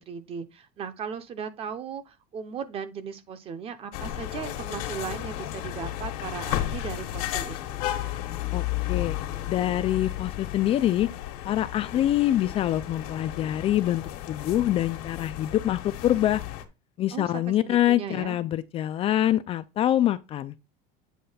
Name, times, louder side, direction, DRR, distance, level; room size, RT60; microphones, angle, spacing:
voice 1, 0.0-7.8 17.1-18.4, right 7 dB, 30° right, 0.8 m, -37 dB
sound 1, 3.9-16.6, left 13 dB, 80° left, 1.3 m, -33 dB
voice 2, 9.5-11.1 11.4-16.4 17.0-20.5, left 12 dB, 30° left, 0.4 m, -25 dB
8.5 x 3.2 x 5.6 m
cardioid pair, 155°, 19 cm